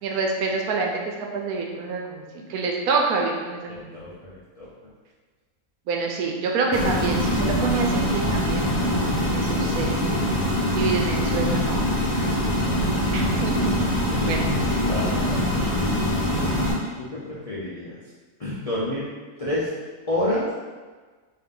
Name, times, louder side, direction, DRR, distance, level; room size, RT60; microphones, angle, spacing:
voice 1, 0.0-4.0 5.9-9.9 10.7-11.9 13.1-13.8 14.3-14.5, right 4 dB, 80° right, 1 dB, 1.1 m, -27 dB
voice 2, 3.9-4.7 9.5-9.8 12.1-12.7 14.1-14.4 14.8-15.8 17.0-18.0 18.4-19.1 19.4-19.7 20.1-20.5, left 1 dB, 50° left, -9 dB, 0.4 m, -30 dB
sound 1, 6.7-16.7, left 1 dB, 35° left, 1.1 m, -23 dB
3.6 x 2.7 x 3.7 m, 1.4 s
omnidirectional pair, 1.6 m